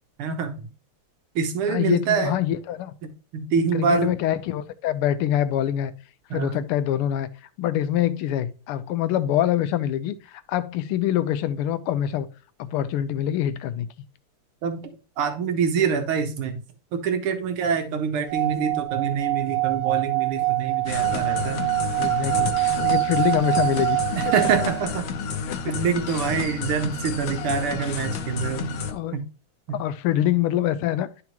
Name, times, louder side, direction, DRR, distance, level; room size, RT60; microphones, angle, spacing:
voice 1, 0.2-0.7 1.4-2.4 3.3-4.1 6.3-6.6 14.6-14.9 15.2-16.6 16.9-21.6 24.2-25.1 25.6-28.8 29.1-29.2 29.7-29.8, right 6 dB, 80° right, 2.0 m, -25 dB
voice 2, 1.7-2.9 3.7-5.9 6.3-7.3 7.6-12.3 12.6-13.9 22.0-24.0 25.5-25.6 28.9-29.2 29.7-31.1, left 11 dB, 85° left, 1.5 m, -25 dB
Singing / Glass, 18.2-24.9, right 22 dB, 60° right, 1.0 m, -25 dB
sound 1, 20.8-28.9, left 6 dB, 65° left, 1.4 m, -31 dB
10.5 x 4.8 x 2.9 m
omnidirectional pair, 2.4 m